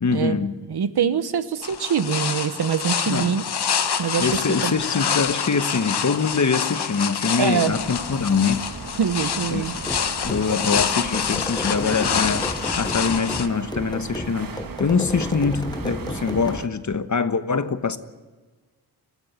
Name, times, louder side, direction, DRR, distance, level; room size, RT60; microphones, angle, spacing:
voice 1, 0.0-0.6 3.1-3.3 4.2-8.6 9.5-9.7 10.2-18.0, left 5 dB, 45° left, 1.2 m, -24 dB
voice 2, 0.7-3.4 4.0-4.7 7.4-7.7 9.0-9.7, right 7 dB, 75° right, 1.2 m, -24 dB
sound 1, 1.6-13.5, left 7 dB, 80° left, 1.3 m, -27 dB
sound 2, 7.7-16.7, right 5 dB, 60° right, 1.5 m, -37 dB
sound 3, 9.8-16.7, left 2 dB, 10° left, 0.7 m, -33 dB
23.0 x 14.5 x 9.6 m
wide cardioid pair, 85°, 39 cm